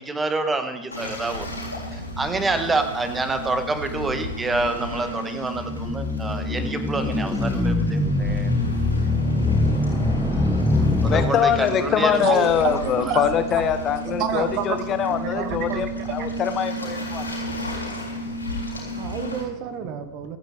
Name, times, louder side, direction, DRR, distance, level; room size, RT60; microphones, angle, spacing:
voice 1, 0.0-1.5 2.2-8.5 11.0-12.4, right 3 dB, 15° right, 1.6 m, -27 dB
Waves surf, 0.9-19.4, equal, 85° left, 3.8 m, -33 dB
sound 1, 5.5-11.9, left 2 dB, 5° left, 1.3 m, -23 dB
voice 2, 11.0-17.2, left 8 dB, 30° left, 1.1 m, -23 dB
voice 3, 12.2-13.6 14.1-15.8 16.2-16.3 18.8-20.4, right 7 dB, 40° right, 1.1 m, -29 dB
25.5 x 9.1 x 3.5 m
figure-of-eight pair, 90°, 0 cm